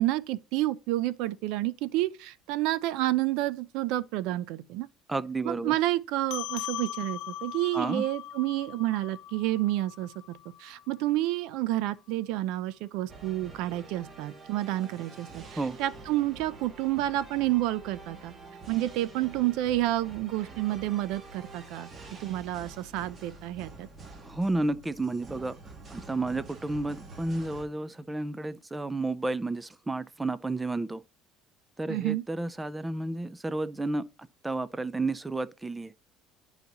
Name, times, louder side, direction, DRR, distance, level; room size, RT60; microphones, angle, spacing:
voice 1, 0.0-4.9 5.4-18.3 18.7-21.9 22.2-23.9 31.9-32.2, right 15 dB, 75° right, 0.5 m, -29 dB
voice 2, 5.1-5.8 7.7-8.0 15.6-15.8 24.2-31.0 31.8-34.0 34.4-35.9, right 2 dB, 10° right, 0.5 m, -31 dB
sound 1, 6.3-11.1, left 13 dB, 70° left, 0.8 m, -40 dB
sound 2, 13.1-27.7, right 3 dB, 35° right, 1.9 m, -47 dB
10.5 x 4.0 x 2.9 m
cardioid pair, 115°, 0 cm